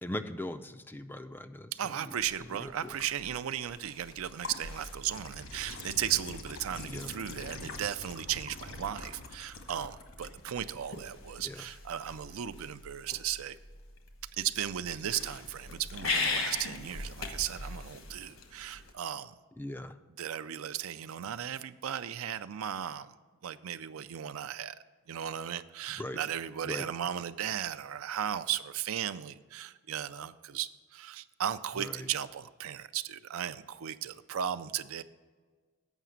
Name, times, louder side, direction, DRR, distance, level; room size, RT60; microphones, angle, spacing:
voice 1, 0.0-2.9 6.9-7.1 11.4-11.6 19.6-20.0 26.0-26.2 26.6-26.9 31.8-32.1, left 1 dB, 10° left, 10 dB, 0.3 m, -40 dB
voice 2, 1.8-13.6 14.4-19.3 20.2-23.2 23.4-24.8 25.1-35.0, right 10 dB, 80° right, 12 dB, 0.4 m, -36 dB
sound 1, 2.2-18.9, left 3 dB, 70° left, 1.2 m, -41 dB
8.1 x 5.7 x 7.4 m, 1.4 s
head